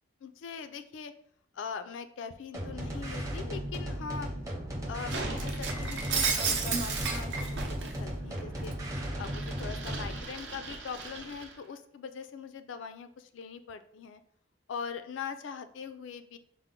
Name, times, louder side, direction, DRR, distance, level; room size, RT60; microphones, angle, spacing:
voice 1, 0.2-1.1 1.5-4.3 4.9-8.7 9.2-14.2 14.7-16.4, left 6 dB, 75° left, 10 dB, 0.3 m, -41 dB
sound 1, 2.5-10.2, equal, 15° right, 0.6 m, -36 dB
Shatter, 5.1-8.0 8.4-11.5, right 5 dB, 65° right, 0.6 m, -34 dB
5.6 x 2.0 x 3.7 m, 0.64 s
head